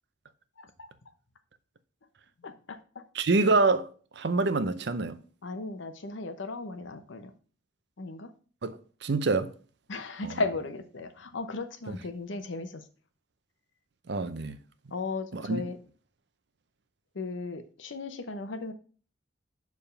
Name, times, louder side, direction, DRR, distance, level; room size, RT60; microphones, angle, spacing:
voice 1, 0.6-0.9 2.4-3.0 5.4-7.3 8.0-8.3 9.9-12.9 14.9-15.8 17.1-18.7, left 3 dB, 75° left, 0.8 m, -36 dB
voice 2, 3.1-3.9 4.2-5.2 8.6-9.5 10.2-10.4 11.9-12.0 14.1-14.6 15.3-15.6, right 3 dB, 60° right, 0.6 m, -26 dB
6.8 x 3.6 x 5.4 m
head